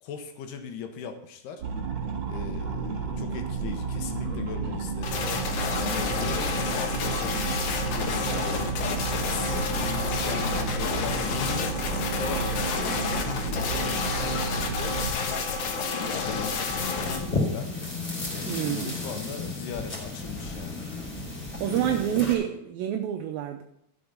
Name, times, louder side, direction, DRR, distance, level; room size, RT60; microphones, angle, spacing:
voice 1, 0.0-1.7 2.3-5.2 5.7-8.8 9.2-11.8 12.2-15.0 15.6-17.7 18.3-20.8 21.6-22.0, left 7 dB, 80° left, 6 dB, 3.1 m, -39 dB
sound 1, 1.6-15.1, right 5 dB, 35° right, 3.9 m, -32 dB
sound 2, 5.0-17.2, left 4 dB, 65° left, 2.6 m, -29 dB
sound 3, 16.6-22.3, left 3 dB, 20° left, 2.6 m, -33 dB
voice 2, 18.4-19.0 21.6-23.6, right 11 dB, 75° right, 5 dB, 2.3 m, -27 dB
12.0 x 7.1 x 5.5 m, 0.76 s
omnidirectional pair, 4.6 m